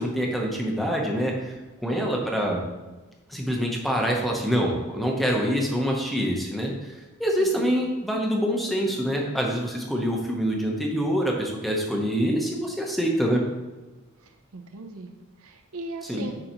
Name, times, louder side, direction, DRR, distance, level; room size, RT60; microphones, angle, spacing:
voice 1, 0.0-1.5 1.8-2.6 3.3-6.9 7.2-13.4 16.0-16.3, equal, ahead, -1 dB, 0.8 m, -25 dB
voice 2, 1.9-2.2 7.4-7.7 14.2-15.1 15.4-16.3, right 2 dB, 70° right, 4 dB, 0.7 m, -39 dB
9.7 x 3.9 x 3.0 m, 1.2 s
head